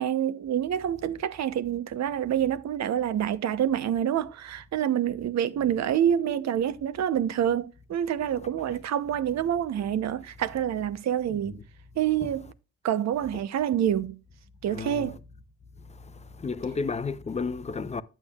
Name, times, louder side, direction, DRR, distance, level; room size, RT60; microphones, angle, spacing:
voice 1, 0.0-11.6 12.0-12.5 12.8-14.2 14.6-15.2, right 10 dB, 65° right, 0.8 m, -27 dB
voice 2, 11.3-11.6 14.7-15.1 15.9-18.0, left 4 dB, 20° left, 0.7 m, -33 dB
10.0 x 8.2 x 2.3 m
cardioid pair, 90°, 30 cm